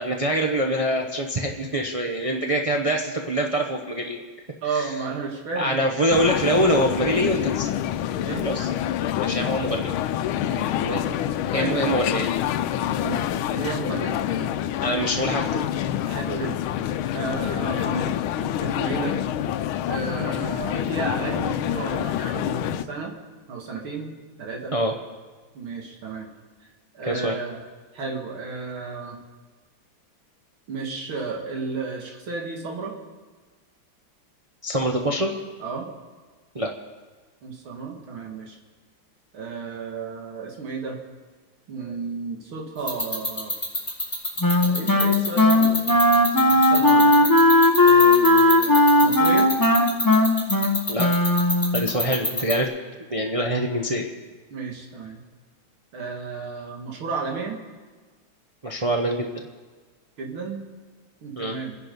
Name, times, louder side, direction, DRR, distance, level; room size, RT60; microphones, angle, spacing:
voice 1, 0.0-4.2 4.7-4.9 5.6-7.7 8.4-8.7 9.2-9.9 10.7-11.1 11.5-12.3 14.8-15.7 24.7-24.9 27.1-27.3 34.6-35.3 36.5-36.7 50.9-51.1 51.7-52.7 53.1-54.1 58.6-59.4 61.4-61.6, right 1 dB, 60° right, 1 dB, 0.3 m, -24 dB
voice 2, 4.6-5.8 8.2-8.8 9.2-9.4 10.4-11.8 13.0-13.2 13.5-14.9 16.0-16.6 17.1-19.2 19.9-23.2 23.5-24.1 24.4-24.8 25.5-26.3 26.6-26.7 26.9-27.6 27.9-29.2 30.7-33.0 35.6-35.9 37.4-38.6 39.3-41.0 41.7-43.6 44.6-46.0 46.4-47.3 47.8-49.5 50.2-50.3 54.5-55.2 55.9-57.6 60.2-60.6 61.2-61.8, right 4 dB, 85° right, 1 dB, 2.9 m, -33 dB
sound 1, 6.1-22.8, left 11 dB, 85° left, 1.5 m, -27 dB
sound 2, 42.9-52.5, left 2 dB, 15° left, 3.9 m, -25 dB
Wind instrument woodwind instrument, 44.4-51.8, left 1 dB, 30° left, 0.3 m, -17 dB
26.0 x 10.5 x 5.2 m, 1.4 s
omnidirectional pair, 2.2 m